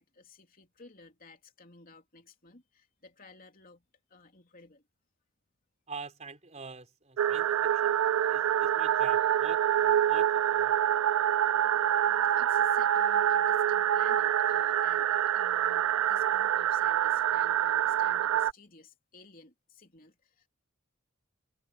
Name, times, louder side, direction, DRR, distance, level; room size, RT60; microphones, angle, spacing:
voice 1, 0.0-4.9 8.2-8.6 12.0-20.5, left 3 dB, 40° left, 3.3 m, -56 dB
voice 2, 5.9-8.0 8.3-10.8, right 4 dB, 35° right, 4.5 m, -45 dB
sound 1, 7.2-18.5, right 10 dB, 75° right, 0.3 m, -26 dB
head